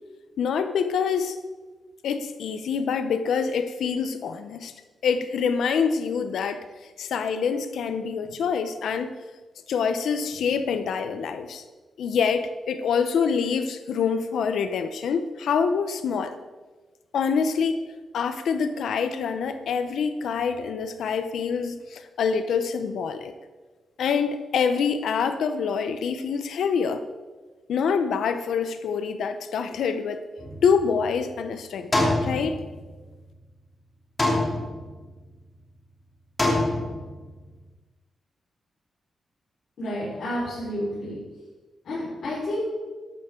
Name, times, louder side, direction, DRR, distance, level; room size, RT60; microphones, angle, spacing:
voice 1, 0.4-1.4 2.0-4.7 5.0-6.6 7.0-9.1 9.7-11.6 12.0-16.4 17.1-17.9 18.1-23.3 24.0-27.0 27.7-30.2 30.6-31.9 32.2-32.6, left 6 dB, 90° left, 10 dB, 0.8 m, -26 dB
sound 1, 30.4-31.3 31.9-33.2 34.2-35.2 36.4-37.4, left 1 dB, 25° left, 2.9 m, -26 dB
voice 2, 39.8-41.2 41.8-42.7, left 1 dB, 65° left, -9 dB, 4.7 m, -30 dB
13.5 x 12.0 x 3.8 m, 1.3 s
wide cardioid pair, 120°, 0 cm